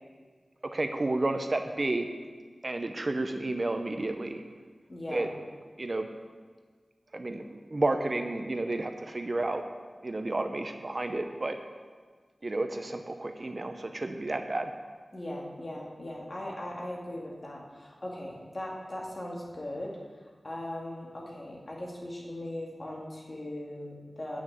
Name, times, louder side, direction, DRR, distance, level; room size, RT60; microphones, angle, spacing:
voice 1, 0.7-2.1 2.6-4.4 5.1-5.3 5.8-6.1 7.1-9.6 10.0-11.6 12.4-14.7, right 2 dB, 45° right, 6 dB, 0.7 m, -31 dB
voice 2, 4.9-5.3 15.1-20.0 20.4-24.4, left 1 dB, 40° left, -3 dB, 2.3 m, -39 dB
8.8 x 6.3 x 7.7 m, 1.5 s
wide cardioid pair, 80°, 0 cm